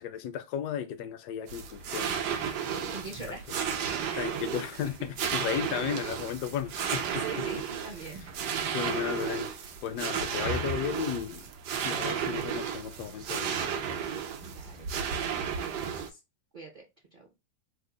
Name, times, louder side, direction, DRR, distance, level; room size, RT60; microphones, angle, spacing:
voice 1, 0.0-2.2 2.6-3.0 4.2-7.2 7.5-7.6 8.7-9.5 9.8-11.5 11.8-14.1, left 9 dB, 75° left, 1.1 m, -35 dB
sound 1, 1.5-16.1, right 7 dB, 75° right, 1.1 m, -33 dB
voice 2, 2.7-3.5 4.1-4.3 4.8-4.9 7.1-8.3 14.4-16.2 16.5-17.3, right 3 dB, 60° right, 0.5 m, -44 dB
3.5 x 2.0 x 3.7 m
omnidirectional pair, 1.9 m